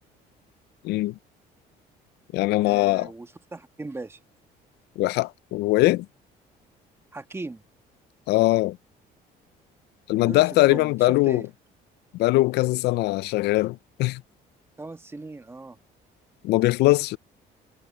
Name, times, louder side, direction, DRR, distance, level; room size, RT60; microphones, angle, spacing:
voice 1, 0.8-1.1 2.3-3.1 5.0-6.1 8.3-8.8 10.1-11.4 12.1-14.2 16.4-17.2, left 18 dB, 80° left, 0.4 m, -21 dB
voice 2, 2.6-4.2 7.1-7.6 10.2-11.5 14.8-15.8, right 3 dB, 15° right, 1.5 m, -38 dB
cardioid pair, 110°, 17 cm